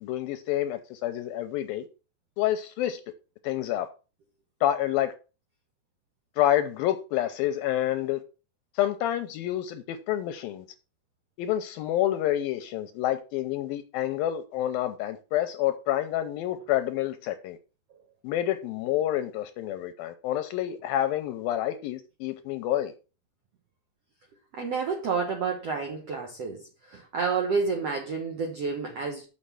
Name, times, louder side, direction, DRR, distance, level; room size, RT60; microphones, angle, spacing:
voice 1, 0.0-1.9 2.4-3.0 3.4-3.9 4.6-5.1 6.4-8.2 8.8-10.7 11.4-17.6 18.2-22.9, left 12 dB, 80° left, 2.3 m, -28 dB
voice 2, 24.6-26.6 26.9-29.2, right 5 dB, 65° right, 1.6 m, -29 dB
6.5 x 6.5 x 5.7 m
omnidirectional pair, 4.6 m